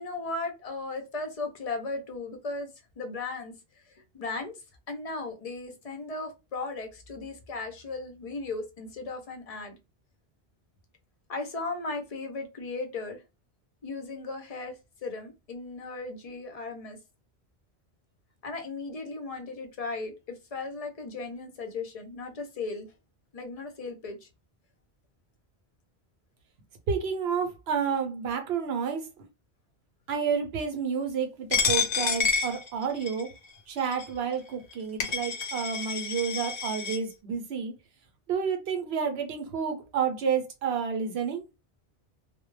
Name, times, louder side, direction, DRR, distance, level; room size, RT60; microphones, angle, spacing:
voice 1, 0.0-2.7 3.0-3.5 3.9-4.5 4.9-9.8 11.3-13.2 13.8-14.7 15.0-17.0 18.4-22.9 23.3-24.3, left 3 dB, 45° left, 0.6 m, -36 dB
voice 2, 26.9-29.1 30.1-33.3 33.7-37.7 38.3-41.4, right 6 dB, 70° right, 0.8 m, -30 dB
Coin (dropping), 31.5-33.3 33.9-34.0 34.7-34.8 35.0-37.0, left 5 dB, 90° left, 0.9 m, -28 dB
2.2 x 2.0 x 3.1 m
omnidirectional pair, 1.1 m